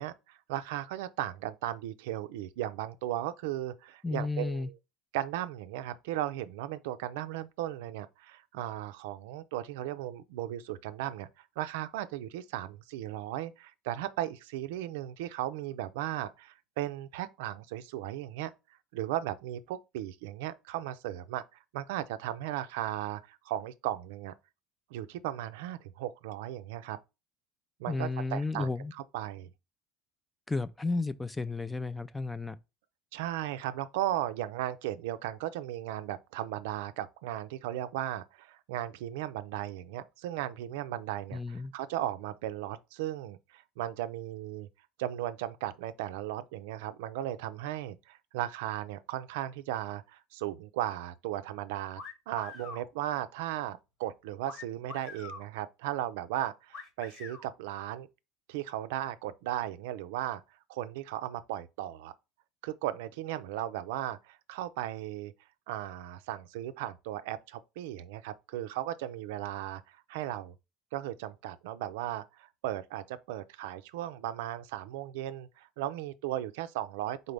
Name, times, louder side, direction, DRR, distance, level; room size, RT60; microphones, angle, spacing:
voice 1, 0.0-4.7 5.1-11.3 11.6-18.5 18.9-21.4 21.7-24.3 24.9-27.0 27.8-28.7 29.1-29.5 33.1-44.7 45.0-52.0 52.3-58.1 58.5-60.4 60.7-62.1 62.6-65.3 65.7-70.6 70.9-77.3, right 13 dB, 90° right, 0.4 m, -36 dB
voice 2, 4.0-4.7 27.9-28.9 30.5-32.6 41.3-41.7, left 3 dB, 10° left, 0.3 m, -33 dB
sound 1, 51.9-52.9 54.4-55.5 56.7-57.4, left 4 dB, 50° left, 1.2 m, -44 dB
4.0 x 3.9 x 3.3 m
supercardioid pair, 115°, 0 cm